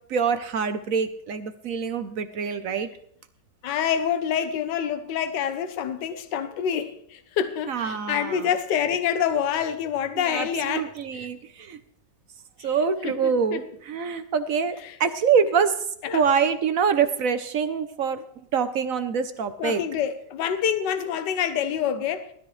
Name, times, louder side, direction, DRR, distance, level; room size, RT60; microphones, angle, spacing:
voice 1, 0.1-2.9 7.7-8.5 10.2-11.8 12.6-15.8 16.1-19.8, right 6 dB, 60° right, 1.0 m, -25 dB
voice 2, 3.6-11.3 13.0-13.6 16.0-16.2 19.6-22.3, left 8 dB, 80° left, 1.5 m, -27 dB
19.0 x 13.0 x 3.2 m
omnidirectional pair, 1.9 m